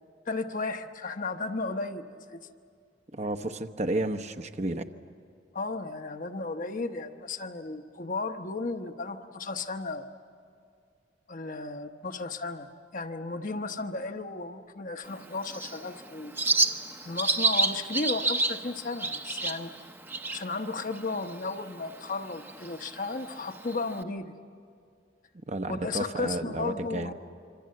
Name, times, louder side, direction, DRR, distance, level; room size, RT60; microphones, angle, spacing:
voice 1, 0.3-2.0 2.3-2.4 5.5-10.1 11.3-16.3 17.0-19.7 20.3-24.4 25.7-27.1, left 3 dB, 50° left, 6 dB, 1.0 m, -34 dB
voice 2, 3.1-4.9 25.5-27.1, right 2 dB, 40° right, 7 dB, 0.9 m, -32 dB
Bird, 15.1-24.0, right 3 dB, 15° right, 0.8 m, -31 dB
26.5 x 25.0 x 7.7 m, 2.3 s
head